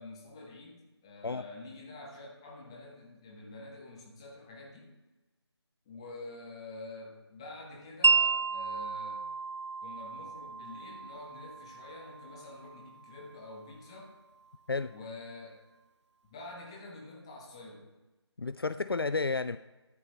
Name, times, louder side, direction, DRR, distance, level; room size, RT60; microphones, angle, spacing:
voice 1, 0.0-4.9 5.9-9.3 9.8-14.1 14.9-15.6 16.3-17.9, left 2 dB, 10° left, -1 dB, 1.2 m, -47 dB
Wind chime, 8.0-14.1, right 4 dB, 90° right, 0.5 m, -32 dB
voice 2, 18.4-19.6, left 4 dB, 55° left, 13 dB, 0.4 m, -31 dB
13.5 x 11.5 x 3.2 m, 1.1 s
figure-of-eight pair, 165°, 15 cm